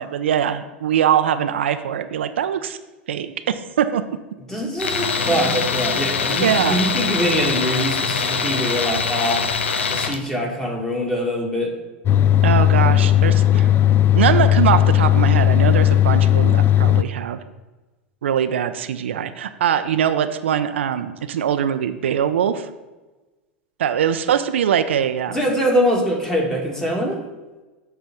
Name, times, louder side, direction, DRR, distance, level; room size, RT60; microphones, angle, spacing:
voice 1, 0.0-2.8 3.1-4.0 6.3-6.8 12.4-13.7 14.1-17.4 18.2-22.7 23.8-25.4, right 9 dB, 80° right, 10 dB, 0.5 m, -22 dB
voice 2, 4.5-9.5 9.9-11.7 25.3-27.2, equal, 5° left, -1 dB, 2.0 m, -23 dB
Tools, 4.8-10.2, left 5 dB, 90° left, 0.6 m, -23 dB
sound 1, 5.3-9.1, equal, 20° right, 1.1 m, -41 dB
sound 2, 12.1-17.0, left 11 dB, 35° left, 0.3 m, -16 dB
7.6 x 3.3 x 6.0 m, 1.2 s
hypercardioid pair, 100°, 6 cm